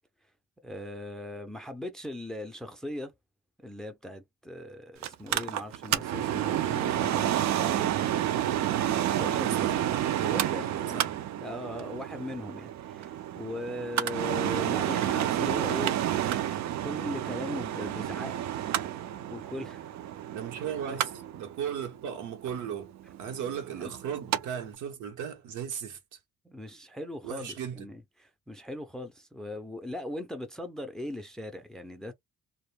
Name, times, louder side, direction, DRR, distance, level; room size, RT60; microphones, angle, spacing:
voice 1, 0.6-3.1 3.6-7.9 9.1-9.5 10.2-11.0 11.4-16.0 16.8-18.3 19.3-19.8 20.9-21.0 23.7-23.9 26.4-32.1, left 1 dB, ahead, 0.4 m, -39 dB
Mechanical fan, 5.0-24.4 24.7-24.8, right 11 dB, 65° right, 0.4 m, -30 dB
voice 2, 9.1-11.1 20.3-26.2 27.2-27.9, right 8 dB, 80° right, 0.9 m, -37 dB
2.1 x 2.1 x 3.1 m
cardioid pair, 90°, 30 cm